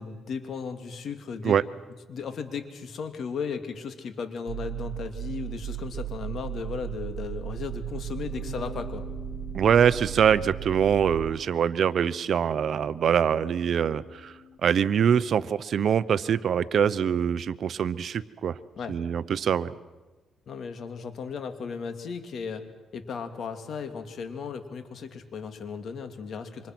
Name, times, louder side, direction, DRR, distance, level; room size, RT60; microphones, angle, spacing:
voice 1, 0.0-1.6 2.1-9.1 18.8-19.0 20.5-22.7 22.9-26.7, left 5 dB, 60° left, 7 dB, 2.5 m, -35 dB
sound 1, 4.5-11.3, right 13 dB, 90° right, 1.3 m, -36 dB
Bass guitar, 8.3-14.6, left 6 dB, 85° left, 7.5 m, -47 dB
voice 2, 9.5-18.6 18.9-19.7, right 8 dB, 60° right, 16 dB, 0.8 m, -24 dB
27.5 x 25.0 x 6.1 m, 1.2 s
cardioid pair, 90°, 0 cm